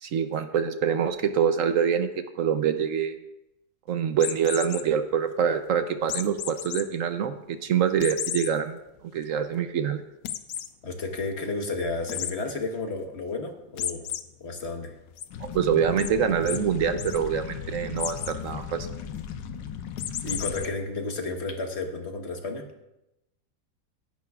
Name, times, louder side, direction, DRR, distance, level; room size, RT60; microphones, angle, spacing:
voice 1, 0.0-2.1 2.4-3.1 3.9-8.8 9.1-10.0 15.5-18.9, right 7 dB, 65° right, 9 dB, 0.8 m, -25 dB
sound 1, 4.1-4.8 6.1-6.8 7.3-7.4 8.0-8.5 9.0-9.1 9.4-9.5 10.2-10.7 12.1-12.3 13.8-14.2 14.6-15.2 16.0-16.1 16.5-16.6 16.9-17.2 18.0-18.4 20.0-20.7, left 10 dB, 65° left, 0.9 m, -33 dB
voice 2, 10.8-14.1 14.4-14.9 20.2-22.6, left 3 dB, 40° left, 4 dB, 1.4 m, -32 dB
sound 2, 15.3-20.7, left 7 dB, 85° left, 1.5 m, -37 dB
16.5 x 10.5 x 2.4 m, 0.90 s
omnidirectional pair, 2.0 m